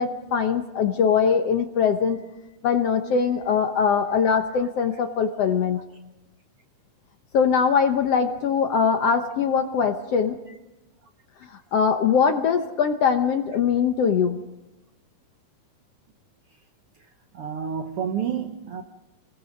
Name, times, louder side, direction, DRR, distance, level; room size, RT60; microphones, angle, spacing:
voice 1, 0.0-2.2 2.6-5.8 7.3-10.3 11.5-14.4, left 6 dB, 65° left, 1.6 m, -22 dB
voice 2, 17.3-18.8, right 7 dB, 70° right, 1.4 m, -29 dB
29.0 x 21.0 x 5.2 m
omnidirectional pair, 3.7 m